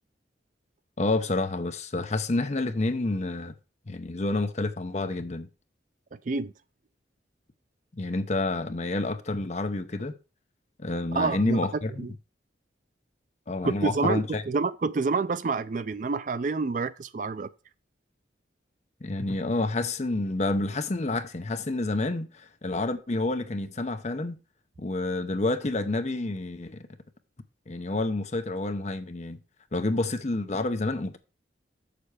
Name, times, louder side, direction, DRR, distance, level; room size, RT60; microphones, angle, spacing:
voice 1, 1.0-3.5 3.9-5.5 7.9-10.1 10.8-12.1 13.5-14.4 19.0-24.4 24.8-26.9 27.7-29.4 29.7-31.2, left 2 dB, 35° left, 0.7 m, -29 dB
voice 2, 11.1-11.7 12.0-12.1 13.6-17.5, right 4 dB, 45° right, 0.4 m, -28 dB
7.0 x 6.8 x 4.8 m
head